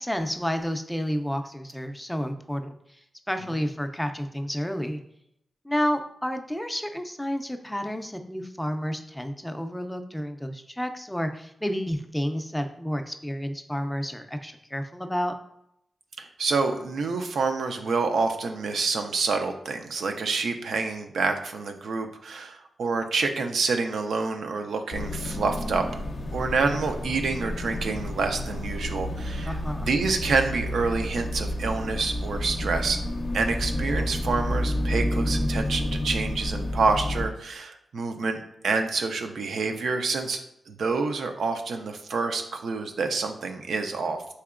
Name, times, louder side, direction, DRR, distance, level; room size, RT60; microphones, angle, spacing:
voice 1, 0.0-2.7 3.3-5.0 5.6-15.3 29.4-29.9, equal, 5° left, 6 dB, 0.4 m, -30 dB
voice 2, 16.2-25.8 26.3-33.0 33.3-40.4 40.7-44.2, right 4 dB, 80° right, 5 dB, 0.4 m, -27 dB
sound 1, 24.9-37.3, left 1 dB, 60° left, 0.5 m, -30 dB
4.2 x 2.9 x 2.4 m, 0.77 s
cardioid pair, 60°, 0 cm